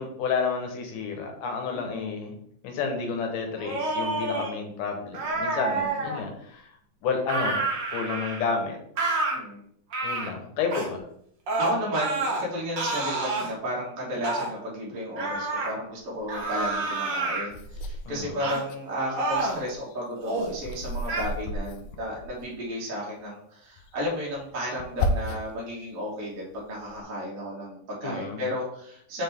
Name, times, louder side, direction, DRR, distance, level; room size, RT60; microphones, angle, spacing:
voice 1, 0.0-2.4 2.6-6.7 7.0-7.6 7.9-8.8 10.0-11.1 18.1-18.4 28.0-28.4, left 5 dB, 70° left, 3 dB, 2.5 m, -30 dB
voice 2, 1.7-2.1 5.7-6.0 9.3-9.6 11.6-29.2, equal, 40° right, -5 dB, 1.1 m, -33 dB
sound 1, 3.6-4.5 5.1-6.2 7.3-8.5 9.0-9.4 9.9-10.3 10.7-10.9 11.5-12.4 12.8-13.5 14.2-14.5 15.2-15.7 16.3-17.5 18.4-18.6 19.1-19.6 20.2-20.5 21.1-21.2, right 3 dB, 85° right, 1.0 m, -28 dB
sound 2, 17.5-18.8 19.2-22.7 23.8-25.6 26.1-27.0, left 1 dB, 90° left, 1.7 m, -34 dB
5.8 x 5.1 x 3.6 m, 0.68 s
omnidirectional pair, 4.2 m